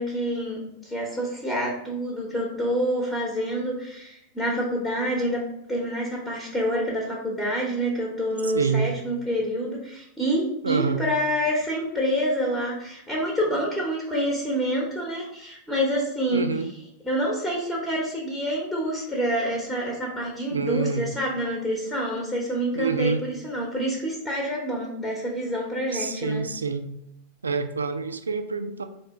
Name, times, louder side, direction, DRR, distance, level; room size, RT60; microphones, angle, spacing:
voice 1, 0.0-5.4 5.7-16.4 17.0-26.4, equal, 10° left, -2 dB, 1.0 m, -27 dB
voice 2, 8.4-8.9 10.6-11.0 16.3-16.7 20.5-21.1 22.7-23.2 25.9-26.9 27.4-28.8, right 4 dB, 75° right, 8 dB, 0.3 m, -27 dB
4.3 x 2.8 x 3.5 m, 0.79 s
figure-of-eight pair, 90°, 0 cm